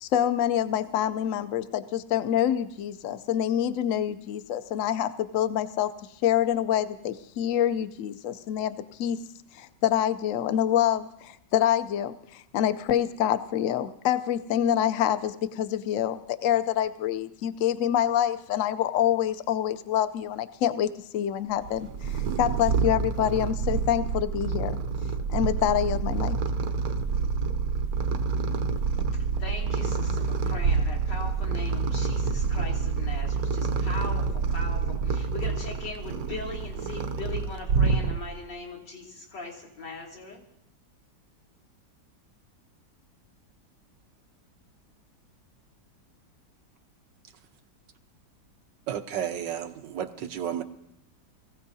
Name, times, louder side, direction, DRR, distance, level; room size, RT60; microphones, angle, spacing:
voice 1, 0.0-5.9 6.2-9.2 9.5-24.8 25.3-26.4, left 10 dB, 65° left, 12 dB, 0.8 m, -26 dB
Purr, 21.6-38.5, right 5 dB, 65° right, 1.1 m, -27 dB
voice 2, 29.1-40.4, left 3 dB, 80° left, -3 dB, 3.2 m, -40 dB
voice 3, 48.9-50.6, right 9 dB, 85° right, 7 dB, 1.5 m, -32 dB
23.0 x 15.5 x 2.7 m, 0.78 s
omnidirectional pair, 1.9 m